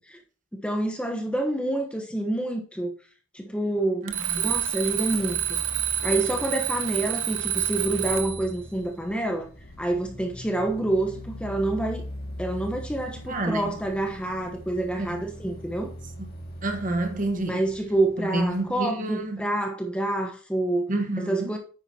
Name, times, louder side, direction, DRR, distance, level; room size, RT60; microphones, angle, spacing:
voice 1, 0.5-2.9 3.3-5.6 6.0-9.5 9.8-12.0 12.4-15.9 17.5-20.9 21.3-21.6, right 1 dB, 5° left, 1.1 m, -27 dB
voice 2, 4.0-4.5 13.3-13.8 15.0-15.3 16.6-17.6 18.2-19.5 20.9-21.5, right 2 dB, 40° right, 1.3 m, -29 dB
sound 1, 4.1-18.8, equal, 50° left, 2.2 m, -41 dB
Alarm, 4.1-8.5, right 10 dB, 65° right, 0.9 m, -28 dB
9.5 x 8.9 x 2.9 m
head